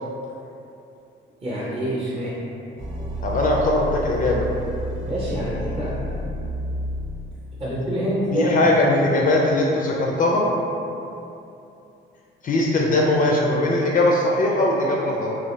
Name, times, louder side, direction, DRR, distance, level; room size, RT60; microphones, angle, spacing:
voice 1, 1.4-2.4 5.1-6.0 7.6-8.9, equal, 25° right, -8 dB, 0.8 m, -26 dB
sound 1, 2.8-7.7, equal, 75° right, 0.5 m, -30 dB
voice 2, 3.2-4.4 8.3-10.5 12.4-15.4, left 2 dB, 45° left, -2 dB, 0.4 m, -20 dB
2.6 x 2.4 x 3.1 m, 2.7 s
cardioid pair, 90°, 20 cm